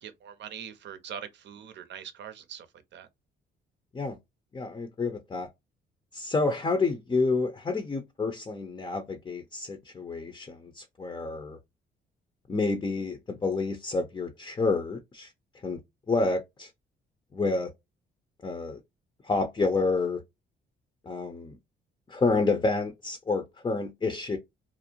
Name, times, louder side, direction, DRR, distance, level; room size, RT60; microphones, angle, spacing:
voice 1, 0.0-2.7 2.9-3.1, right 8 dB, 65° right, 0.6 m, -42 dB
voice 2, 4.5-5.5 6.1-11.6 12.5-15.3 15.6-15.8 16.1-16.7 17.3-17.7 18.4-18.8 19.2-20.2 21.0-21.6 22.1-24.4, left 3 dB, 25° left, 0.5 m, -29 dB
2.5 x 2.0 x 2.7 m
cardioid pair, 90°, 20 cm